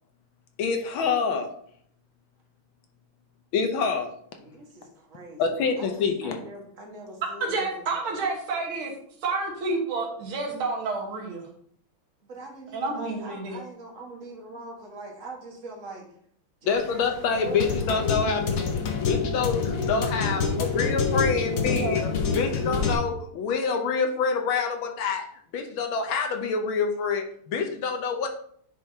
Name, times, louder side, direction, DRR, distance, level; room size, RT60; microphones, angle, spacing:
voice 1, 0.6-1.5 3.5-4.1 5.4-6.4 16.6-25.2 25.5-28.3, left 5 dB, 70° left, 4 dB, 1.6 m, -27 dB
voice 2, 4.4-7.9 12.3-16.0 16.6-17.9, right 2 dB, 40° right, -1 dB, 1.8 m, -42 dB
voice 3, 7.4-8.9 9.2-11.5 12.7-13.6 21.7-22.0, right 3 dB, 75° right, 1 dB, 2.3 m, -29 dB
sound 1, 16.7-22.9, left 5 dB, 55° left, 1.0 m, -27 dB
10.0 x 5.3 x 2.8 m, 0.64 s
omnidirectional pair, 2.3 m